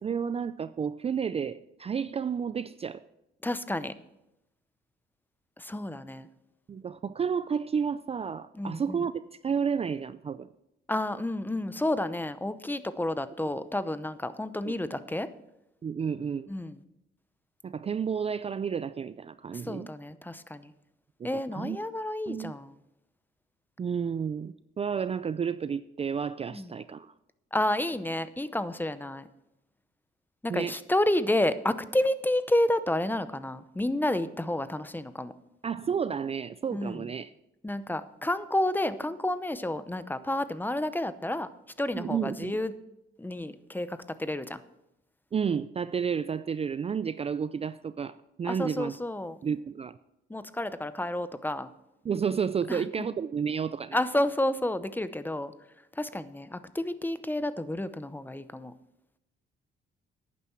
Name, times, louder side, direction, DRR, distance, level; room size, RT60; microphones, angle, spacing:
voice 1, 0.0-3.0 6.7-9.1 9.4-10.5 14.6-14.7 15.8-16.5 17.6-19.9 21.2-21.8 22.3-22.5 23.8-27.1 30.5-30.8 35.6-37.3 41.9-42.6 45.3-49.0 49.4-50.0 52.0-54.0, right 7 dB, 30° right, 14 dB, 0.4 m, -31 dB
voice 2, 3.4-3.9 5.6-6.3 8.5-9.0 10.9-15.3 16.5-16.8 19.5-20.7 21.2-22.7 26.5-26.7 27.5-29.3 30.4-35.3 36.7-37.1 37.6-41.5 41.8-42.7 43.2-44.6 48.5-49.4 50.3-51.7 52.7-52.8 53.9-55.5 56.0-58.7, left 1 dB, 10° left, 13 dB, 0.7 m, -30 dB
11.5 x 9.4 x 4.5 m, 0.88 s
cardioid pair, 90°, 20 cm